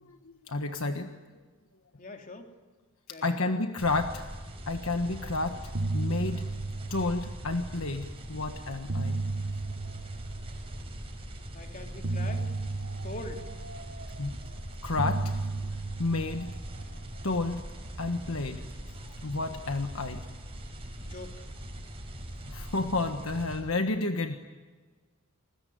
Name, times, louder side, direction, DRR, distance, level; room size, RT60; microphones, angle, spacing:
voice 1, 0.5-1.1 3.2-4.3 4.7-6.5 6.9-9.2 14.2-14.4 14.8-15.3 16.0-16.5 17.2-17.6 18.0-20.2 22.5-24.4, left 2 dB, 65° left, 6 dB, 1.5 m, -31 dB
voice 2, 2.0-2.5 3.1-3.5 11.5-12.5 13.0-13.5 21.0-21.4, left 2 dB, 35° left, 3 dB, 3.3 m, -43 dB
sound 1, 3.8-23.6, right 1 dB, 25° right, 6.2 m, -42 dB
sound 2, 5.1-5.3 5.6-7.9 8.6-11.0 12.0-14.5 15.0-17.5, right 3 dB, 50° right, 1.2 m, -35 dB
29.5 x 21.0 x 9.4 m, 1.4 s
head